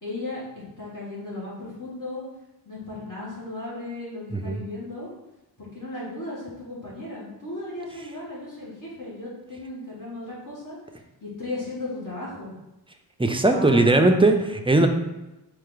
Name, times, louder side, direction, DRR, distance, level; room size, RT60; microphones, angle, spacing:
voice 1, 0.0-2.2 2.6-5.1 5.6-10.8 11.2-12.6 13.4-14.3, left 2 dB, 50° left, -7 dB, 1.5 m, -36 dB
voice 2, 13.2-14.9, right 2 dB, 15° right, 5 dB, 0.4 m, -19 dB
4.4 x 3.2 x 3.8 m, 1.0 s
wide cardioid pair, 75°, 40 cm